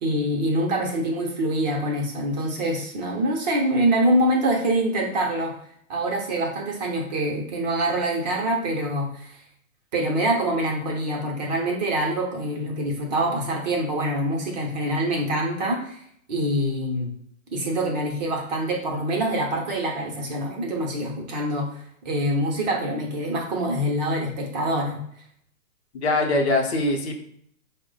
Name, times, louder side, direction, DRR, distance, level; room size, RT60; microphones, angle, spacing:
voice 1, 0.0-5.5 5.9-9.4 9.9-16.0 16.3-17.1 17.5-21.7 22.0-25.0, right 1 dB, 30° right, 0 dB, 0.7 m, -25 dB
voice 2, 25.9-27.2, left 2 dB, 50° left, 2 dB, 0.8 m, -22 dB
4.4 x 2.1 x 3.8 m, 0.67 s
hypercardioid pair, 140°, 41 cm